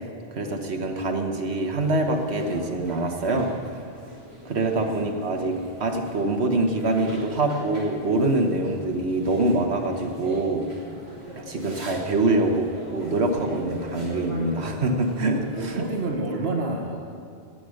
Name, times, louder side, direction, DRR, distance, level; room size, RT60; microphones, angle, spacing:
voice 1, 0.3-3.5 4.4-10.6 11.4-15.9, right 2 dB, 90° right, 4 dB, 1.6 m, -25 dB
sound 1, 1.8-16.1, right 1 dB, 45° right, 3.0 m, -40 dB
voice 2, 15.5-17.2, right 2 dB, 70° right, 1 dB, 1.7 m, -29 dB
17.5 x 8.9 x 6.5 m, 2.3 s
omnidirectional pair, 1.1 m